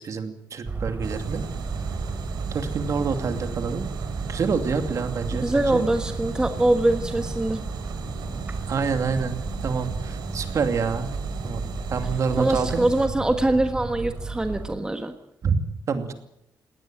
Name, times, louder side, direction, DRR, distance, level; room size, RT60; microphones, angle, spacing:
voice 1, 0.0-1.4 2.5-3.9 4.3-5.9 8.7-11.1 11.4-11.6 11.9-12.9 15.4-15.6 15.9-16.1, right 5 dB, 45° right, 7 dB, 2.6 m, -27 dB
sound 1, 0.7-14.8, right 3 dB, 25° right, 3.4 m, -32 dB
sound 2, 1.0-13.1, right 7 dB, 90° right, 3.7 m, -40 dB
voice 2, 5.4-7.6 12.4-15.1, right 1 dB, 10° right, 6 dB, 1.4 m, -23 dB
20.5 x 18.0 x 9.0 m, 0.80 s
wide cardioid pair, 155°, 7 cm